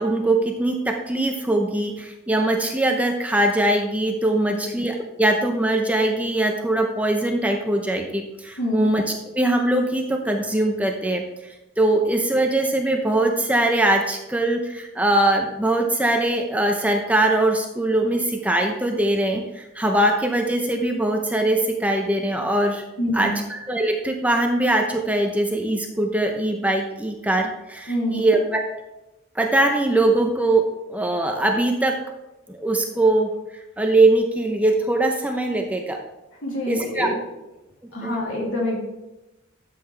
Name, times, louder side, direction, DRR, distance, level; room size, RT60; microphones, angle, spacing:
voice 1, 0.0-11.2 11.8-22.8 23.1-28.6 29.4-30.6 30.9-32.0 32.5-33.3 33.8-36.0 36.7-37.1 38.0-38.1, right 1 dB, 5° right, 3 dB, 0.7 m, -21 dB
voice 2, 8.6-8.9 23.0-23.4 27.9-28.3 36.4-37.1 37.9-38.8, left 1 dB, 75° left, -3 dB, 3.1 m, -26 dB
12.0 x 7.7 x 3.4 m, 0.98 s
head